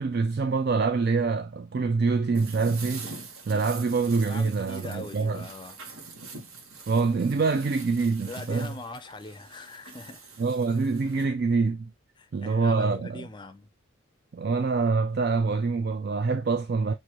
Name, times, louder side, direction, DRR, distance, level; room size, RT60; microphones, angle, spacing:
voice 1, 0.0-3.1 3.5-5.4 6.9-8.7 10.4-11.9 12.3-13.2 14.3-16.9, right 4 dB, 50° right, 0.3 m, -25 dB
sound 1, 2.3-11.2, right 4 dB, 85° right, 1.3 m, -44 dB
voice 2, 4.2-5.8 8.3-10.4 11.2-11.3 12.2-13.7, left 2 dB, 20° left, 0.5 m, -42 dB
6.3 x 2.6 x 2.9 m
head